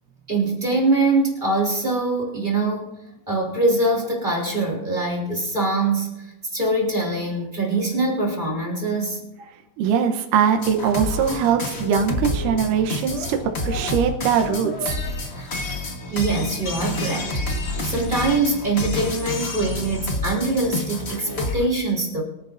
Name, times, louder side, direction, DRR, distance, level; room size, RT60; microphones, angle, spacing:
voice 1, 0.3-2.9 3.3-6.1 6.5-9.2 16.1-17.4 17.8-22.2, right 2 dB, 15° right, -1 dB, 2.8 m, -23 dB
voice 2, 9.8-15.0, right 7 dB, 80° right, 5 dB, 2.5 m, -21 dB
sound 1, 10.6-21.7, left 1 dB, 70° left, 0.6 m, -28 dB
24.0 x 9.7 x 2.6 m, 0.95 s
omnidirectional pair, 3.7 m